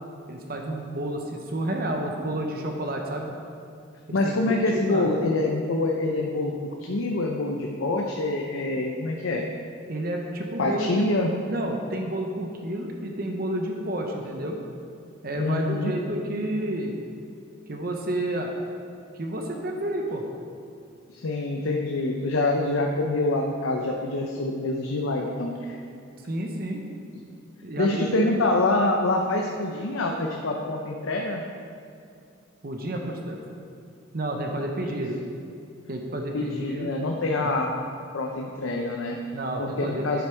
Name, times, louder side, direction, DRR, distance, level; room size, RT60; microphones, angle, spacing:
voice 1, 0.3-3.3 4.2-4.3 4.7-5.1 9.9-11.1 11.5-14.6 15.2-17.0 17.7-18.5 19.1-20.2 26.3-26.8 27.6-28.3 32.6-33.4 34.1-35.2 35.9-36.9 37.4-37.6 39.3-40.2, right 1 dB, 45° right, 2 dB, 0.8 m, -30 dB
voice 2, 4.1-6.5 6.8-9.4 10.6-11.3 15.3-15.9 21.1-25.8 27.8-31.4 34.9-35.0 36.3-37.7 38.1-39.2 39.6-40.2, left 2 dB, 80° left, 1 dB, 0.7 m, -26 dB
9.6 x 7.1 x 4.5 m, 2.5 s
head